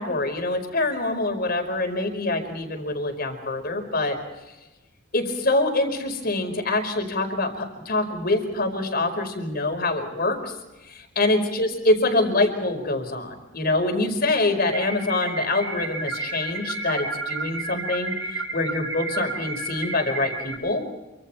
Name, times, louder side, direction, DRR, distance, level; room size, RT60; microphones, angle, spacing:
voice 1, 0.0-4.2 5.1-10.5 10.9-20.8, left 2 dB, 50° left, 6 dB, 5.0 m, -25 dB
sound 1, 14.7-20.5, right 3 dB, 75° right, 4.8 m, -31 dB
28.0 x 26.0 x 4.5 m, 1.1 s
head